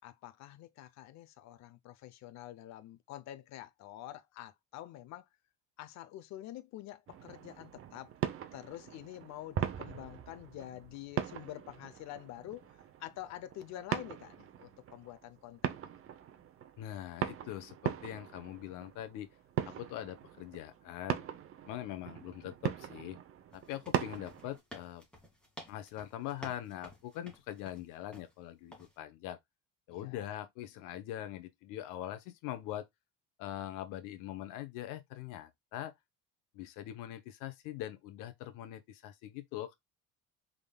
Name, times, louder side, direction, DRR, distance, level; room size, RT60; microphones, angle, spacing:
voice 1, 0.0-5.3 5.8-8.1 8.5-12.7 13.0-16.0 29.9-30.3, left 13 dB, 60° left, 0.8 m, -47 dB
sound 1, 7.1-24.6, right 10 dB, 45° right, 0.9 m, -40 dB
voice 2, 16.8-19.3 19.6-21.3 21.6-23.2 23.5-25.0 25.7-29.4 29.9-32.9 33.4-35.9 36.5-39.8, left 12 dB, 75° left, 1.0 m, -42 dB
sound 2, 23.5-28.3 28.7-29.0, left 1 dB, 5° left, 2.2 m, -52 dB
5.2 x 3.8 x 2.3 m
cardioid pair, 110°, 32 cm